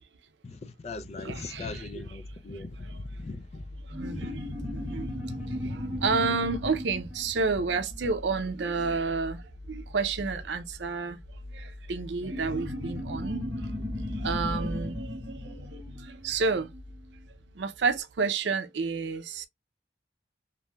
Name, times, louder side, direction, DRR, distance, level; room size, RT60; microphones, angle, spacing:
voice 1, 0.4-3.6 4.1-4.4 4.6-4.7 5.4-5.8, left 3 dB, 40° left, 0.4 m, -40 dB
sound 1, 1.2-18.0, left 1 dB, 65° right, 0.9 m, -45 dB
voice 2, 1.2-2.0 2.5-2.6 3.8-4.4 4.7-5.1 5.5-11.2 11.5-13.7 14.1-16.7 17.5-19.5, right 4 dB, 80° right, 0.5 m, -31 dB
sound 2, 3.9-8.9 12.2-17.1, left 1 dB, 15° right, 1.2 m, -36 dB
3.0 x 2.6 x 2.2 m
head